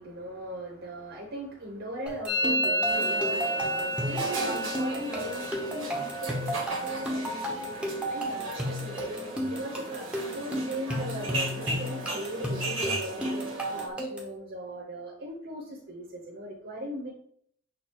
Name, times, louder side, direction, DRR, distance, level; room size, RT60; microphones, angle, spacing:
voice 1, 0.0-9.2 9.5-17.1, right 1 dB, 60° right, -2 dB, 0.9 m, -39 dB
sound 1, 2.1-14.4, equal, 5° right, 0.8 m, -33 dB
Musical instrument, 2.3-9.9 10.2-10.7 11.0-11.6 11.9-13.9, equal, 25° left, 0.9 m, -34 dB
sound 2, 2.8-13.9, right 2 dB, 85° right, 1.2 m, -37 dB
6.3 x 2.5 x 3.0 m, 0.65 s
head